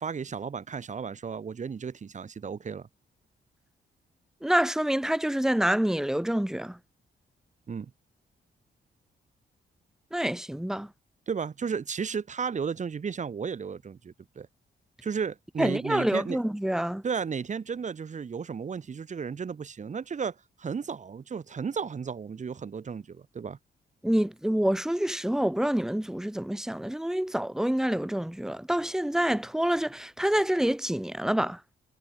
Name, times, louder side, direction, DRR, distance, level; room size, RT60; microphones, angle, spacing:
voice 1, 0.0-2.9 7.7-7.9 11.3-14.5 15.0-16.4 17.0-23.6, right 6 dB, 40° right, 1.1 m, -34 dB
voice 2, 4.4-6.8 10.1-10.9 15.6-17.0 24.0-31.6, right 1 dB, 5° right, 0.6 m, -27 dB
cardioid pair, 95°, 19 cm